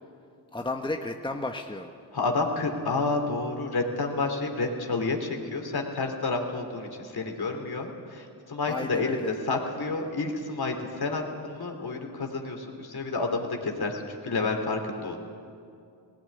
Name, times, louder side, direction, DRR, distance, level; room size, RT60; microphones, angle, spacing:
voice 1, 0.5-1.9 8.7-9.4, left 2 dB, 10° left, 4 dB, 1.3 m, -33 dB
voice 2, 2.1-9.2 9.5-15.2, left 3 dB, 55° left, 3 dB, 3.3 m, -30 dB
18.0 x 16.5 x 9.9 m, 2.4 s
supercardioid pair, 50°, 46 cm